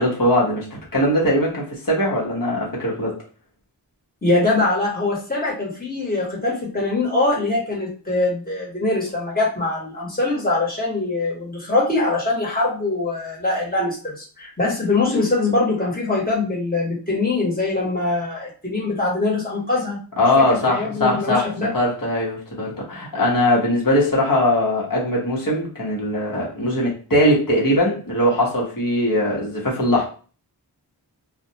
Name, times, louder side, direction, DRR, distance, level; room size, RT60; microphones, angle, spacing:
voice 1, 0.0-3.1 20.2-30.0, left 1 dB, 55° left, -4 dB, 1.0 m, -20 dB
voice 2, 4.2-20.0 20.4-21.7, left 2 dB, 20° left, -5 dB, 1.2 m, -23 dB
2.4 x 2.2 x 2.7 m, 0.38 s
wide cardioid pair, 45°, 41 cm